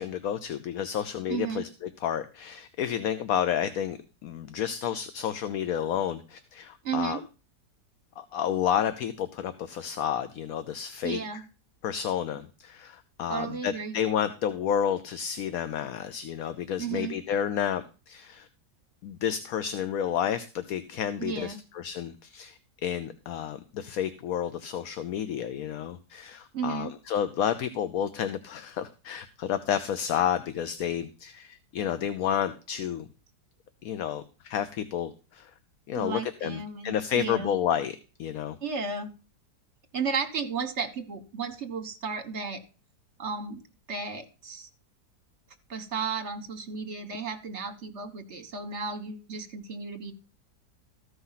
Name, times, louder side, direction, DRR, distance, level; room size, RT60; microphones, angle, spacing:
voice 1, 0.0-7.2 8.2-11.2 11.8-18.5 19.0-33.1 33.8-35.5 35.9-38.6, left 9 dB, 65° left, 11 dB, 1.1 m, -30 dB
voice 2, 1.3-1.6 6.8-7.2 11.0-11.4 13.3-14.0 16.8-17.1 21.2-21.6 26.5-26.9 35.9-37.5 38.6-39.1 39.9-42.6 43.2-43.6 43.9-44.7 45.7-50.1, right 5 dB, 45° right, 7 dB, 1.6 m, -34 dB
14.0 x 5.6 x 5.7 m, 0.34 s
omnidirectional pair, 1.8 m